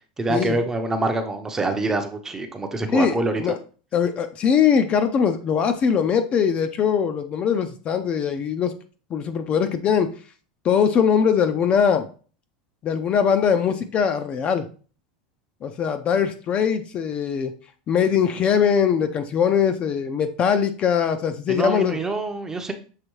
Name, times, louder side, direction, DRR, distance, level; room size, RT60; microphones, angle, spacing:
voice 1, 0.2-3.4 21.5-22.7, right 2 dB, 15° right, 6 dB, 0.6 m, -25 dB
voice 2, 2.9-3.6 3.9-8.7 9.1-10.1 10.6-12.1 12.8-14.6 15.6-17.5 17.9-22.0, left 7 dB, 30° left, 8 dB, 0.5 m, -21 dB
6.5 x 2.7 x 3.1 m, 0.39 s
supercardioid pair, 135°, 4 cm